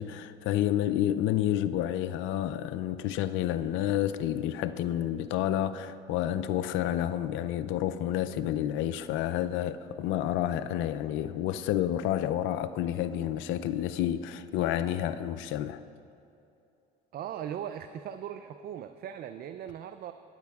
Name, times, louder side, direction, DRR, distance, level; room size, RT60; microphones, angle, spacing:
voice 1, 0.0-15.8, left 11 dB, 65° left, 12 dB, 0.5 m, -29 dB
voice 2, 17.1-20.1, right 9 dB, 45° right, 9 dB, 0.4 m, -39 dB
18.5 x 9.3 x 2.4 m, 2.7 s
supercardioid pair, 80°, 21 cm